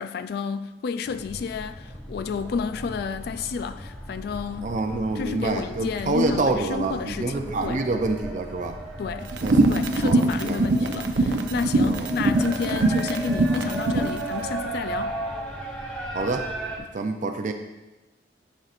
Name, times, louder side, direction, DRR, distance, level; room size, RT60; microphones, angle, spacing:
voice 1, 0.0-4.8 5.1-7.8 9.0-9.3 9.7-15.2, left 5 dB, 60° left, 0.3 m, -31 dB
sound 1, 1.0-16.8, right 1 dB, 10° left, 1.1 m, -36 dB
voice 2, 4.6-8.7 9.4-9.5 10.0-10.9 11.9-12.1 16.1-16.5 16.9-17.5, right 3 dB, 45° right, 0.5 m, -27 dB
sound 2, 9.3-14.2, right 2 dB, 90° right, 0.6 m, -22 dB
10.5 x 5.6 x 2.5 m
head